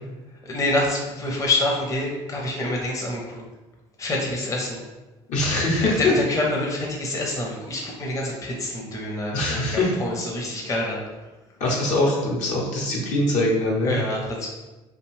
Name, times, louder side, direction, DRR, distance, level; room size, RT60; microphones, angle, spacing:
voice 1, 0.4-3.4 4.0-4.8 5.8-11.0 13.8-14.5, left 1 dB, 25° left, -2 dB, 0.6 m, -27 dB
voice 2, 5.3-6.0 9.3-9.9 11.6-13.9, left 1 dB, 65° left, -3 dB, 0.8 m, -23 dB
2.5 x 2.2 x 3.1 m, 1.1 s
supercardioid pair, 80°, 14 cm